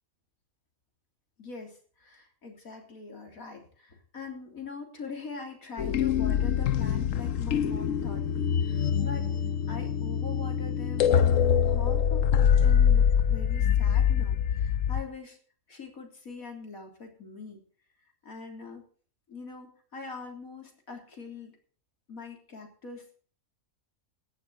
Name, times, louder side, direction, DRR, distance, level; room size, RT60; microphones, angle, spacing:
voice 1, 1.4-9.3 9.7-15.4 15.7-17.6 18.2-18.9 19.3-21.6 22.1-23.1, left 4 dB, 90° left, 3 dB, 3.8 m, -43 dB
sound 1, 5.8-15.0, left 8 dB, 70° left, 1.2 m, -24 dB
16.5 x 11.5 x 4.1 m, 0.43 s
omnidirectional pair, 1.4 m